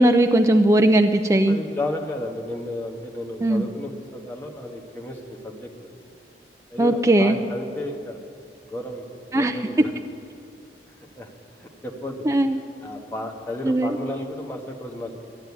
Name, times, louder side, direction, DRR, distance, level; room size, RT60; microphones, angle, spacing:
voice 1, 0.0-1.6 3.4-3.6 6.8-7.4 9.3-9.5 12.3-12.6 13.6-13.9, right 1 dB, 15° right, 6 dB, 0.4 m, -18 dB
voice 2, 1.5-5.9 6.7-8.2 8.7-9.0 9.3-9.9 11.0-11.3 11.6-12.3 12.8-15.1, left 1 dB, 10° left, -1 dB, 1.3 m, -33 dB
11.5 x 11.0 x 8.4 m, 2.3 s
head